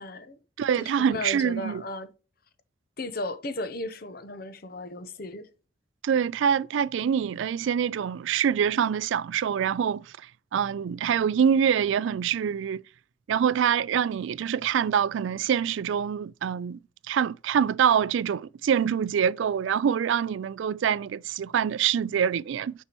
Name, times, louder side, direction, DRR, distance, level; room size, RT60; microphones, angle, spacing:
voice 1, 0.0-0.4 0.8-2.1 3.0-5.5, left 1 dB, 50° left, 0.8 m, -35 dB
voice 2, 0.6-1.8 6.0-10.1 10.5-12.8 13.3-16.8 17.1-22.7, right 8 dB, 75° right, 0.3 m, -25 dB
9.8 x 5.5 x 3.0 m
head